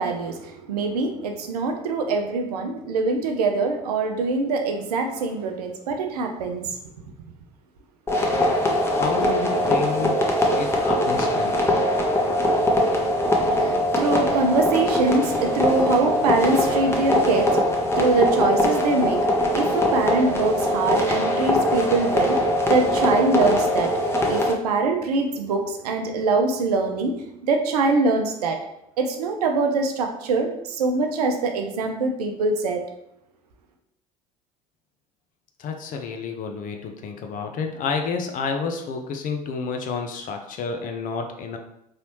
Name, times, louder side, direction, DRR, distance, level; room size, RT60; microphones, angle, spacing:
voice 1, 0.0-6.9 13.3-28.6 29.0-32.8, right 3 dB, 75° right, 4 dB, 0.6 m, -24 dB
sound 1, 8.1-24.5, left 1 dB, 10° left, 0.8 m, -22 dB
voice 2, 8.9-10.3 10.6-11.8 35.6-41.6, left 5 dB, 40° left, 4 dB, 0.6 m, -30 dB
4.0 x 3.2 x 2.9 m, 0.79 s
figure-of-eight pair, 65°, 20 cm